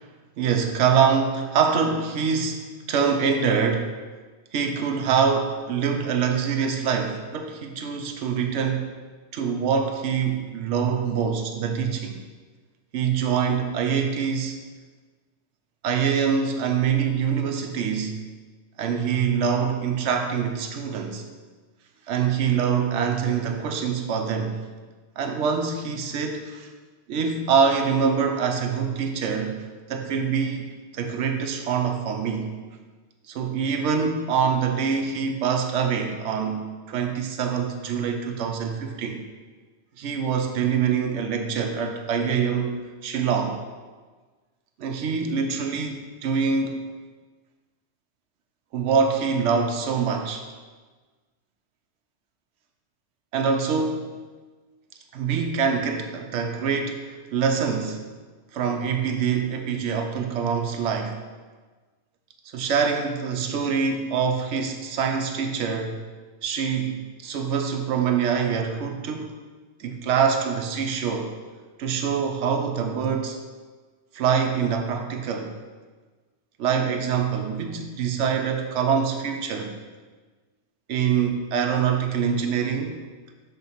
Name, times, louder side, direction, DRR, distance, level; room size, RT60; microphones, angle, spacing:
voice 1, 0.4-3.9 4.5-8.9 9.3-12.2 12.9-14.6 15.8-18.2 18.8-21.2 22.1-24.6 25.2-26.7 27.1-30.7 30.9-32.5 33.3-39.2 40.0-42.7 43.0-43.6 44.8-46.8 48.7-50.5 53.3-54.1 55.1-58.0 58.5-61.2 62.5-66.0 66.4-69.3 69.8-71.3 71.8-73.4 74.1-75.5 76.6-79.7 80.9-83.0, right 6 dB, 80° right, 4 dB, 1.0 m, -25 dB
5.9 x 3.8 x 5.6 m, 1.4 s
omnidirectional pair, 1.2 m